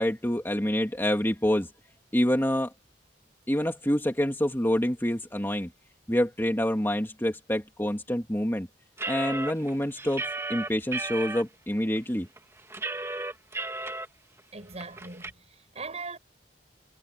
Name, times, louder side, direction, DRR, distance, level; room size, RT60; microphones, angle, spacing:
voice 1, 0.0-1.7 2.1-2.7 3.5-5.7 6.1-8.7 9.1-12.3, equal, 15° left, 2.5 m, -27 dB
sound 1, 9.0-11.4 12.0-12.1 12.4-14.1 14.4-14.5 14.8-15.3, right 2 dB, 15° right, 1.4 m, -34 dB
voice 2, 14.5-16.2, right 3 dB, 35° right, 7.9 m, -40 dB
head